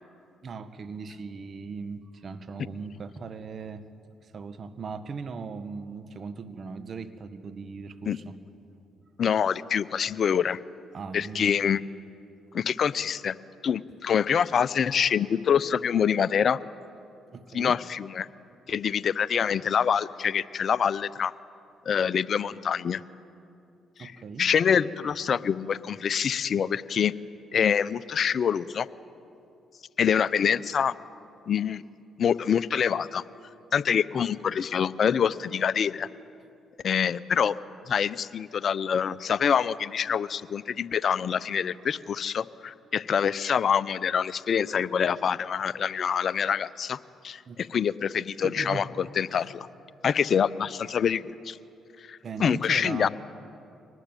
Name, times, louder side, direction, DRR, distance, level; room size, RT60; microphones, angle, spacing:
voice 1, 0.4-3.8 4.2-8.4 10.9-11.5 17.3-17.8 24.0-24.5 47.4-47.8 48.4-48.8 49.3-49.4 52.2-53.1, right 5 dB, 50° right, 10 dB, 1.6 m, -38 dB
voice 2, 9.2-10.6 11.1-11.8 12.5-13.4 13.6-16.6 17.5-18.3 18.7-21.3 21.9-23.0 24.0-24.1 24.4-27.1 27.5-28.9 30.0-31.0 31.5-31.8 32.2-33.2 33.7-36.1 36.8-37.6 37.9-49.7 50.0-51.6 52.0-53.1, left 7 dB, 55° left, 17 dB, 0.7 m, -26 dB
24.0 x 19.0 x 9.2 m, 2.7 s
hypercardioid pair, 50°, 0 cm